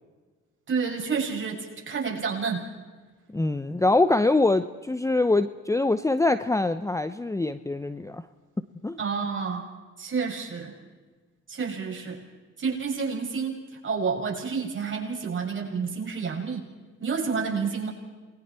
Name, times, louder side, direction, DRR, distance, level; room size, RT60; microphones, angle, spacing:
voice 1, 0.7-2.7 9.0-9.6 10.0-10.7 11.5-12.2 12.6-13.6 13.8-16.6 17.0-17.9, right 5 dB, 40° right, -1 dB, 6.6 m, -29 dB
voice 2, 3.3-8.2 8.8-9.0, left 2 dB, 10° left, 12 dB, 0.7 m, -24 dB
29.0 x 21.5 x 4.4 m, 1.4 s
cardioid pair, 90°, 30 cm